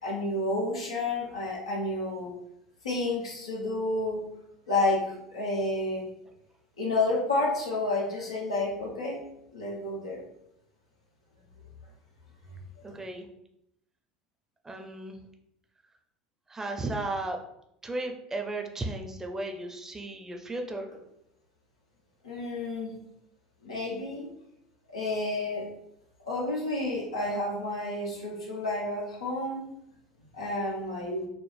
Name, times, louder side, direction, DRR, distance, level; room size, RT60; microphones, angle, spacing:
voice 1, 0.0-2.3 2.8-4.2 4.7-5.1 5.3-6.1 6.8-9.2 9.5-10.2 12.9-13.0 22.2-23.0 23.6-24.3 24.9-25.7 26.3-29.6 30.3-31.3, left 2 dB, 90° left, -3 dB, 1.1 m, -30 dB
voice 2, 12.8-13.3 14.6-15.2 16.5-17.4 17.8-20.9, right 2 dB, 15° right, 3 dB, 0.6 m, -35 dB
4.4 x 2.0 x 3.4 m, 0.79 s
hypercardioid pair, 75°, 3 cm